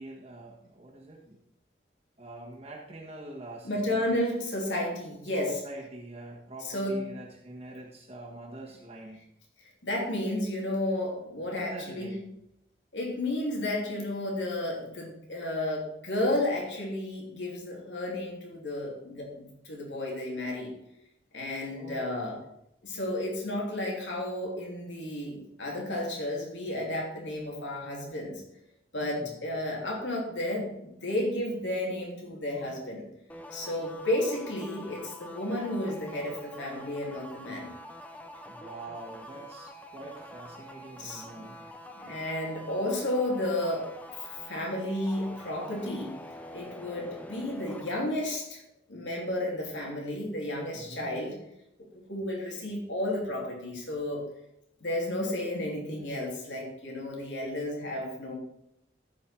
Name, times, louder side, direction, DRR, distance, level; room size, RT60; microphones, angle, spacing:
voice 1, 0.0-1.4 2.2-4.2 5.2-5.3 5.6-9.2 11.5-12.3 21.7-22.4 29.0-29.3 38.5-41.6 50.7-51.1, right 2 dB, 35° right, -3 dB, 1.5 m, -45 dB
voice 2, 3.6-5.6 6.6-7.1 9.8-12.1 12.9-20.7 21.3-22.4 22.8-28.4 28.9-33.0 33.5-37.7 41.0-41.5 41.9-43.9 44.2-46.1 46.5-48.6 48.9-51.4 51.9-54.2 54.8-58.3, left 1 dB, 90° left, -1 dB, 3.3 m, -32 dB
sound 1, 33.3-47.9, equal, 10° left, 0.7 m, -46 dB
14.5 x 5.5 x 4.5 m, 0.82 s
head